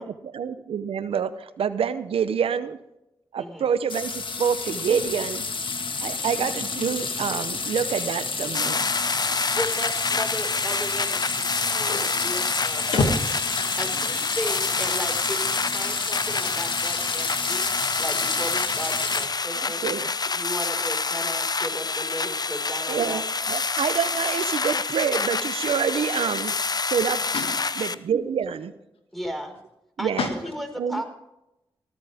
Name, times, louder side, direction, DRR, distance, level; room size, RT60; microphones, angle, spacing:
voice 1, 0.0-2.7 3.3-5.4 6.0-8.8 19.5-20.1 22.9-26.5 26.9-27.2 27.8-28.7 30.0-30.3 30.8-31.0, right 7 dB, 85° right, 13 dB, 0.7 m, -27 dB
voice 2, 3.4-3.7 9.4-12.9 13.8-17.7 18.0-19.8 20.3-23.2 29.1-29.5 30.0-31.0, equal, ahead, 3 dB, 4.8 m, -35 dB
sound 1, 3.9-19.3, left 4 dB, 60° left, 1.8 m, -30 dB
sound 2, 8.5-27.9, left 4 dB, 45° left, 0.7 m, -27 dB
voice 3, 8.8-9.3 11.9-12.3 12.9-13.8 27.3-27.5 30.2-30.3, left 3 dB, 85° left, 4 dB, 2.2 m, -28 dB
18.5 x 14.0 x 3.5 m, 0.89 s
cardioid pair, 40°, 9 cm